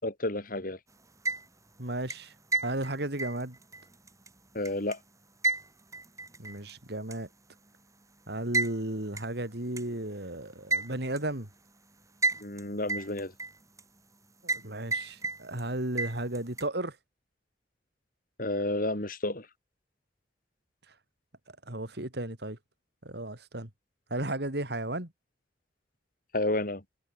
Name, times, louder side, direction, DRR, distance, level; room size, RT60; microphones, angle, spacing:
voice 1, 0.0-0.8 4.5-5.0 12.4-13.3 18.4-19.5 26.3-26.8, left 2 dB, 50° left, 4.1 m, -31 dB
sound 1, 1.0-1.7 2.1-5.0 5.4-6.7 7.1-7.2 8.5-8.7 9.2-9.3 9.8-9.9 10.7-11.2 12.2-12.6 12.9-13.8 14.5-14.7 14.9-15.6 16.0-16.7, right 3 dB, 20° right, 7.5 m, -31 dB
voice 2, 1.8-2.3 2.6-3.6 6.4-7.3 8.3-11.5 14.4-17.0 20.9-21.0 21.5-22.6 23.0-23.7 24.1-25.1, right 1 dB, 65° right, 3.6 m, -34 dB
head